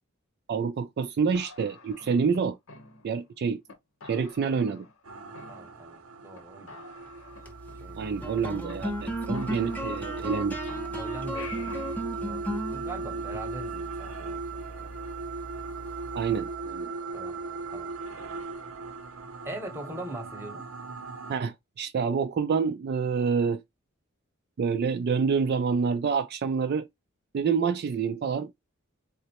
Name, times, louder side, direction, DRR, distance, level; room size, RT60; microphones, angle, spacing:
voice 1, 0.5-2.6 3.0-3.6 4.0-4.9 8.0-10.6 16.1-16.9 21.3-23.6 24.6-26.9 27.3-28.5, right 5 dB, 50° right, 0.3 m, -27 dB
sound 1, 1.3-3.3 3.7-3.8 4.0-5.1 5.3-6.1 6.3-6.4 6.7-8.7 9.0-9.1 9.3-10.4 10.7-12.0, left 4 dB, 70° left, 0.9 m, -48 dB
sound 2, 5.0-21.4, right 4 dB, 85° right, 0.7 m, -38 dB
voice 2, 5.5-7.1 7.8-8.0 11.0-11.8 12.2-14.9 17.1-17.4 17.7-17.9 19.4-20.7, right 1 dB, 10° right, 0.9 m, -41 dB
sound 3, 7.2-16.8, equal, 10° left, 0.6 m, -37 dB
3.8 x 2.1 x 2.8 m
head